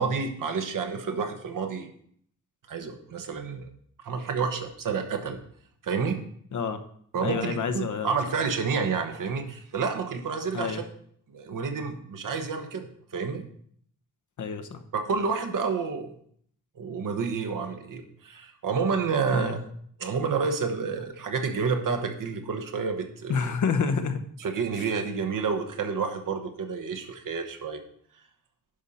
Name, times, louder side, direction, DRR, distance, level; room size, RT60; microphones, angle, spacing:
voice 1, 0.0-1.9 2.7-3.7 4.0-5.4 5.8-6.2 7.1-10.9 11.3-13.4 14.9-16.1 16.8-19.6 20.0-23.5 24.4-27.8, right 5 dB, 70° right, 6 dB, 1.2 m, -29 dB
voice 2, 7.2-8.2 10.5-10.8 14.4-14.8 19.3-19.5 23.3-24.2, left 5 dB, 60° left, 7 dB, 0.9 m, -28 dB
10.5 x 5.5 x 4.2 m, 0.63 s
wide cardioid pair, 175°, 33 cm